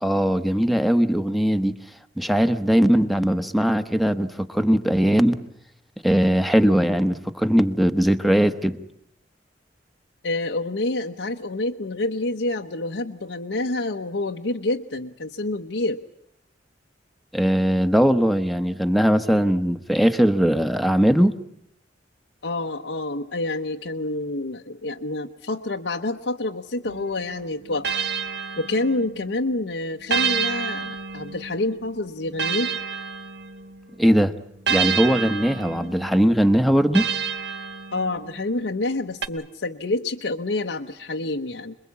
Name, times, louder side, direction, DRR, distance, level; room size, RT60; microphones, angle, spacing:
voice 1, 0.0-1.7 2.2-5.4 6.0-8.8 17.3-21.4 34.0-34.3 34.7-37.1, equal, ahead, 8 dB, 1.0 m, -20 dB
voice 2, 10.2-16.0 22.4-27.9 28.6-32.7 37.9-41.8, left 2 dB, 90° left, 3 dB, 0.9 m, -28 dB
sound 1, 26.8-29.3 30.1-33.9 34.7-38.4 39.2-39.3, right 6 dB, 70° right, 1.2 m, -29 dB
27.0 x 22.0 x 8.4 m, 0.72 s
head